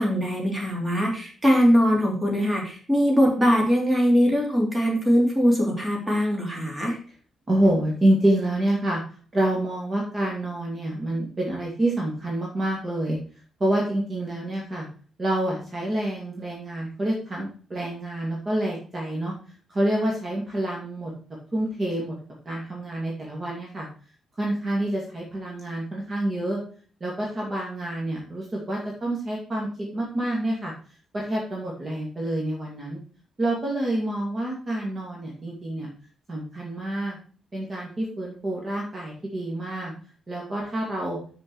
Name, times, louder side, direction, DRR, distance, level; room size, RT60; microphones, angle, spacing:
voice 1, 0.0-7.0, equal, 10° right, -1 dB, 3.0 m, -21 dB
voice 2, 7.5-9.0 9.3-13.2 13.6-14.9 15.2-19.3 19.7-21.1 21.5-22.1 22.5-23.9 24.4-26.6 27.0-30.7 31.1-33.0 33.4-35.9 36.3-37.2 37.5-39.9 40.3-41.2, right 1 dB, 30° right, -3 dB, 2.3 m, -27 dB
7.5 x 6.7 x 4.7 m, 0.43 s
cardioid pair, 125°, 0 cm